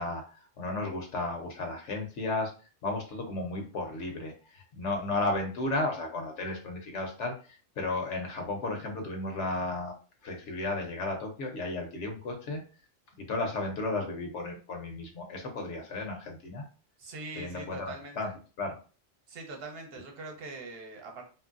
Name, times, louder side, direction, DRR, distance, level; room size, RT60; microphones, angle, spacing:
voice 1, 0.0-2.5 2.8-9.9 10.2-12.6 13.2-16.6 17.4-18.3 18.6-18.8, left 2 dB, 70° left, 3 dB, 0.9 m, -34 dB
voice 2, 17.0-18.3 19.3-21.2, right 3 dB, 55° right, 2 dB, 0.9 m, -42 dB
2.9 x 2.6 x 2.4 m, 0.36 s
omnidirectional pair, 1.3 m